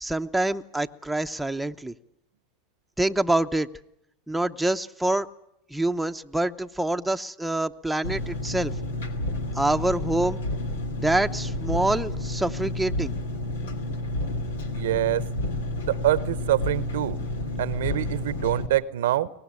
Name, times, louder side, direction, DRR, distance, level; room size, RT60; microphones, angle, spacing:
voice 1, 0.0-1.9 3.0-3.7 4.3-5.3 5.7-8.7 9.5-10.4 11.0-13.2, right 2 dB, 5° right, 6 dB, 0.8 m, -26 dB
Engine, 8.0-18.7, left 1 dB, 90° left, 2.6 m, -30 dB
voice 2, 14.7-15.2 15.8-17.2 17.6-19.3, right 13 dB, 80° right, 17 dB, 0.9 m, -25 dB
24.0 x 19.0 x 9.6 m, 0.79 s
hypercardioid pair, 100°, 0 cm